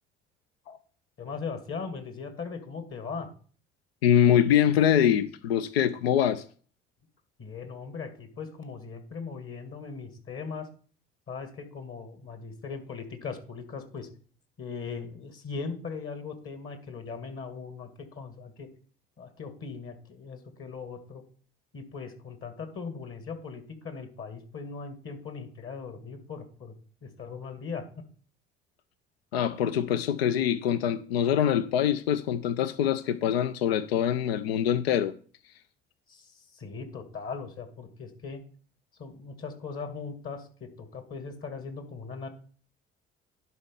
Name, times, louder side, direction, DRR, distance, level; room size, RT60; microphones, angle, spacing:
voice 1, 1.2-3.3 7.4-10.7 11.3-14.1 14.6-18.7 19.2-21.2 21.7-26.7 27.0-27.9 36.1-38.4 39.0-42.3, left 5 dB, 45° left, 2.3 m, -39 dB
voice 2, 4.0-6.4 29.3-35.1, left 9 dB, 80° left, 0.5 m, -24 dB
11.0 x 4.2 x 5.7 m
figure-of-eight pair, 50°, 30 cm